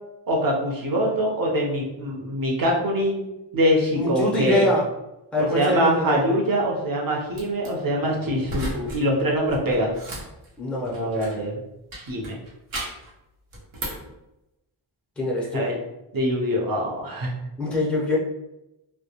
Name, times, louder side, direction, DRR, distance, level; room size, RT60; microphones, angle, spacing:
voice 1, 0.3-3.3 3.5-4.7 5.4-10.0 10.9-11.6 12.1-12.4 15.5-15.8 16.1-17.3, equal, 45° right, -1 dB, 0.7 m, -24 dB
voice 2, 3.9-4.8 5.3-6.3 8.0-8.1 10.6-11.4 15.2-15.7 17.6-18.2, left 1 dB, 5° left, -5 dB, 0.6 m, -24 dB
sound 1, 7.3-7.7 8.4-9.0 9.3-11.5 11.9-13.1 13.5-14.1, right 1 dB, 85° right, 0.9 m, -35 dB
2.2 x 2.2 x 2.8 m, 0.92 s
wide cardioid pair, 65°, 48 cm